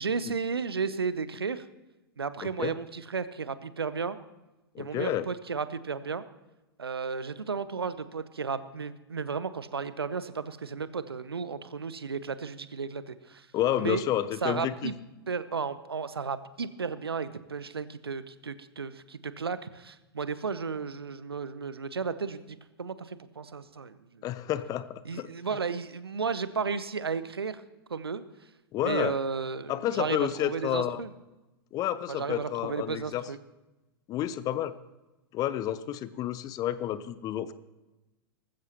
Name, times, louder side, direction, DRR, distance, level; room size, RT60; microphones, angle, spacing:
voice 1, 0.0-1.6 2.2-4.2 4.8-6.2 6.8-13.5 13.8-14.0 14.4-14.9 15.3-24.2 25.0-27.6 27.9-28.2 28.8-31.1 32.1-33.4, right 5 dB, 75° right, 14 dB, 0.8 m, -33 dB
voice 2, 4.7-5.3 13.5-14.9 24.2-25.3 28.7-29.1 29.7-31.0 31.7-33.2 34.1-34.8 35.3-37.5, left 12 dB, 30° left, 16 dB, 0.7 m, -30 dB
19.5 x 15.0 x 3.0 m, 1.0 s
figure-of-eight pair, 100°, 13 cm